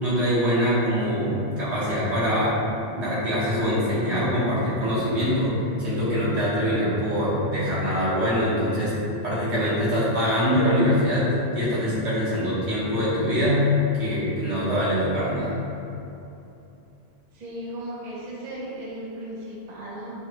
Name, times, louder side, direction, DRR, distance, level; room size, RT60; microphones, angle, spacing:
voice 1, 0.0-2.5 2.9-5.5 5.8-8.9 9.2-13.7 13.9-15.5, equal, 80° right, -10 dB, 1.6 m, -23 dB
voice 2, 17.3-20.1, right 1 dB, 45° right, -6 dB, 0.8 m, -36 dB
6.4 x 2.3 x 2.9 m, 2.8 s
omnidirectional pair, 1.1 m